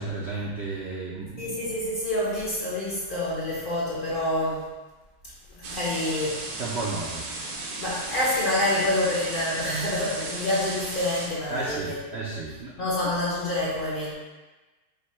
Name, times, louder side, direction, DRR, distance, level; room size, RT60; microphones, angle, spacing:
voice 1, 0.0-1.6 6.6-7.2 11.5-12.7, right 3 dB, 65° right, -5 dB, 0.6 m, -33 dB
voice 2, 1.4-4.6 5.5-6.4 7.8-12.0 12.8-14.1, left 1 dB, 40° left, -7 dB, 0.8 m, -27 dB
sound 1, 5.6-11.3, right 2 dB, 80° right, 1.3 m, -35 dB
5.2 x 2.1 x 4.2 m, 1.2 s
omnidirectional pair, 1.6 m